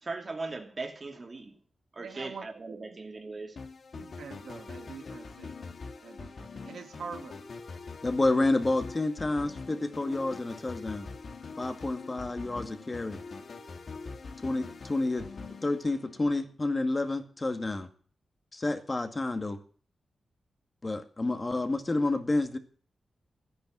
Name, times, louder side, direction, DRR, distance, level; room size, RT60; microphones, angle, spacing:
voice 1, 0.0-1.6 1.9-3.6, right 3 dB, 35° right, 3.0 m, -39 dB
voice 2, 2.0-2.9 3.9-5.6 6.0-7.4, right 6 dB, 90° right, 2.0 m, -45 dB
sound 1, 3.6-16.5, left 4 dB, 60° left, 2.5 m, -44 dB
voice 3, 8.0-11.1 11.6-13.2 14.4-15.3 15.6-17.9 18.5-19.6 20.8-22.6, left 2 dB, 30° left, 2.1 m, -29 dB
14.5 x 10.5 x 7.6 m
wide cardioid pair, 100°, 0 cm